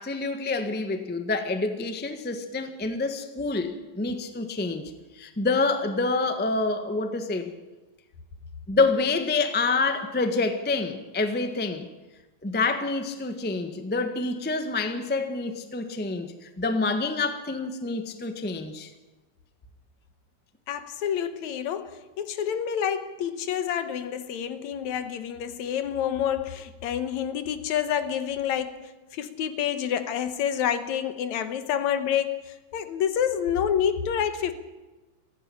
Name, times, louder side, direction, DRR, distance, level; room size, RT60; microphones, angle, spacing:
voice 1, 0.0-7.5 8.7-11.9 12.4-18.9, left 3 dB, 10° left, 7 dB, 0.4 m, -27 dB
voice 2, 20.7-34.5, left 9 dB, 80° left, 11 dB, 2.5 m, -28 dB
17.5 x 15.5 x 9.9 m, 1.1 s
omnidirectional pair, 3.3 m